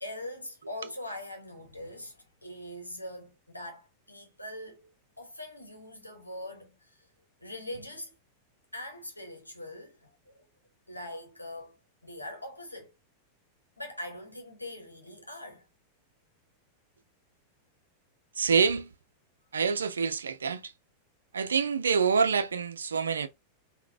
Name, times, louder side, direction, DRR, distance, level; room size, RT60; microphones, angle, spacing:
voice 1, 0.0-7.1 7.4-8.1 8.7-10.5 10.9-11.8 12.0-12.9 13.8-15.6, left 1 dB, 85° left, 0.9 m, -42 dB
voice 2, 18.4-18.9 19.5-20.7 21.3-23.3, right 5 dB, 70° right, 0.4 m, -26 dB
3.8 x 2.0 x 2.6 m
figure-of-eight pair, 90°, 0 cm